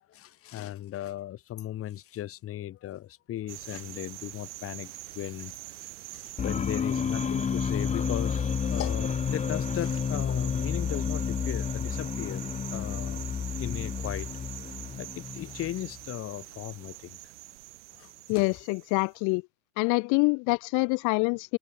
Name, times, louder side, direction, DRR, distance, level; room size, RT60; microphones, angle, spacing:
voice 1, 0.1-12.4 12.7-13.2 13.6-14.3 14.9-17.2 17.9-18.5, left 13 dB, 40° left, 4.1 m, -37 dB
sound 1, 3.5-19.2, right 18 dB, 70° right, 7.4 m, -44 dB
sound 2, 6.4-16.0, left 7 dB, 20° left, 1.3 m, -31 dB
voice 2, 18.3-19.4 19.8-21.6, left 30 dB, 55° left, 2.0 m, -26 dB
hypercardioid pair, 110°, 36 cm